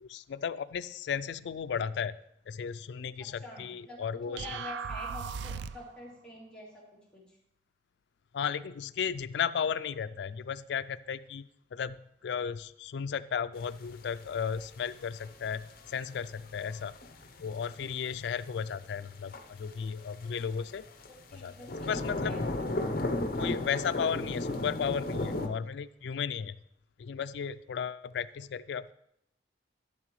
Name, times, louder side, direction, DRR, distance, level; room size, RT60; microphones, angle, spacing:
voice 1, 0.0-2.2 2.5-4.4 8.3-16.9 17.4-20.8 21.3-22.4 23.4-26.6 27.0-28.9, left 7 dB, 75° left, 13 dB, 0.3 m, -35 dB
voice 2, 3.4-4.0 4.2-6.7 7.1-7.2 21.1-22.4, left 1 dB, 5° left, -7 dB, 3.1 m, -46 dB
sound 1, 4.4-6.0, right 6 dB, 80° right, 0.3 m, -37 dB
sound 2, 13.6-25.5, left 2 dB, 55° left, 0.8 m, -36 dB
12.0 x 7.5 x 3.1 m, 0.76 s
head